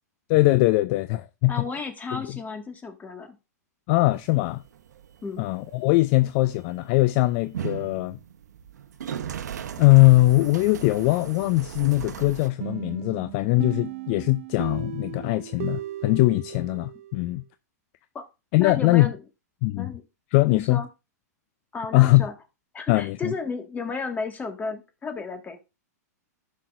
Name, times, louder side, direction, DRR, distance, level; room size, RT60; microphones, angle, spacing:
voice 1, 0.3-1.6 2.1-2.2 3.9-4.6 5.4-8.2 9.8-17.4 18.5-19.1 19.6-19.9 20.3-20.8 21.9-22.2 22.9-23.3, left 20 dB, 45° left, 0.4 m, -21 dB
voice 2, 1.5-3.4 5.2-5.4 18.2-18.3 18.6-19.2 19.8-20.0 20.5-20.9 21.7-22.3 22.7-25.6, left 4 dB, 15° left, 1.7 m, -33 dB
sound 1, 4.1-12.5, right 9 dB, 80° right, 0.9 m, -38 dB
sound 2, 12.6-17.3, right 15 dB, 55° right, 0.4 m, -36 dB
13.5 x 6.1 x 2.5 m
hypercardioid pair, 115°, 9 cm